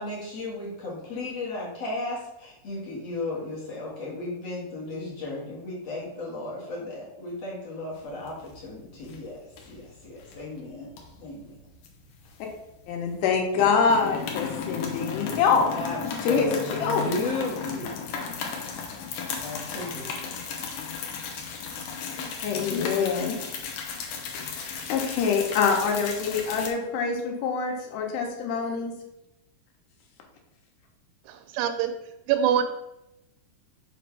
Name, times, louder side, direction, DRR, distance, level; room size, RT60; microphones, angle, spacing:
voice 1, 0.0-10.9 11.2-11.6 15.7-18.0 19.4-20.1, left 2 dB, 55° left, -5 dB, 1.9 m, -34 dB
sound 1, 8.0-8.7 9.0-9.2 9.6-10.4 10.9-12.9 13.1-13.3 13.5-26.7, left 6 dB, 70° left, 2.2 m, -35 dB
voice 2, 12.9-15.6 16.2-17.2 22.0-22.1 22.4-23.3 24.9-28.9, left 5 dB, 90° left, 1 dB, 3.3 m, -25 dB
voice 3, 31.3-31.9 32.3-32.6, right 9 dB, 85° right, 8 dB, 2.4 m, -24 dB
6.5 x 3.2 x 5.9 m, 0.90 s
omnidirectional pair, 4.7 m